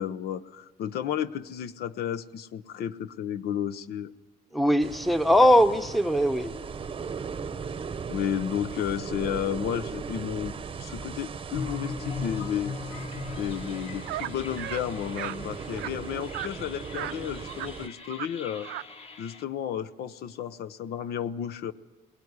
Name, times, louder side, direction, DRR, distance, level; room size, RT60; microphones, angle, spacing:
voice 1, 0.0-4.1 8.1-10.5 10.8-12.7 13.4-18.7 19.2-21.7, left 9 dB, 70° left, 12 dB, 0.9 m, -32 dB
voice 2, 4.5-6.5, equal, ahead, 10 dB, 0.9 m, -21 dB
sound 1, 4.8-17.9, right 6 dB, 30° right, 0.9 m, -38 dB
sound 2, 11.5-19.4, left 4 dB, 35° left, 1.9 m, -40 dB
sound 3, 14.1-14.3 14.6-14.8 15.1-15.4 15.7-15.9 16.3-16.5 16.9-17.1 17.5-17.7 18.0-18.3 18.5-18.9, right 16 dB, 85° right, 0.7 m, -35 dB
22.0 x 19.0 x 9.6 m, 1.3 s
cardioid pair, 110°, 17 cm